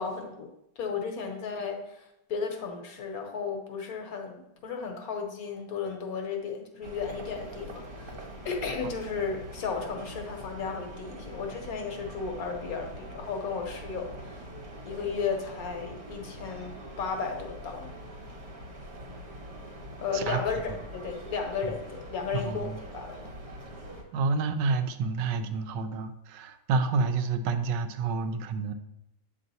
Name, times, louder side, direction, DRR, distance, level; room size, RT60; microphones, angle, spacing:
voice 1, 0.0-14.5 14.8-18.0 20.0-23.2, left 5 dB, 65° left, 3 dB, 1.2 m, -34 dB
sound 1, 6.8-24.0, right 1 dB, 60° right, 1.5 m, -43 dB
voice 2, 22.3-22.8 24.1-28.7, right 4 dB, 90° right, 8 dB, 1.2 m, -29 dB
7.6 x 3.1 x 4.0 m, 0.82 s
omnidirectional pair, 1.8 m